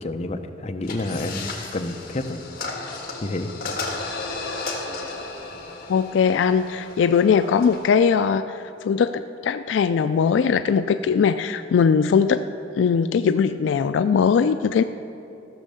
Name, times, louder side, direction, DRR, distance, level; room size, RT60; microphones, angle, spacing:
voice 1, 0.0-2.4 3.2-3.5, left 2 dB, 35° left, 6 dB, 0.6 m, -29 dB
sound 1, 0.8-8.0, left 3 dB, 55° left, 1.7 m, -34 dB
voice 2, 5.9-12.4 12.8-14.8, left 6 dB, 70° left, 11 dB, 0.3 m, -20 dB
15.0 x 6.3 x 6.8 m, 2.7 s
head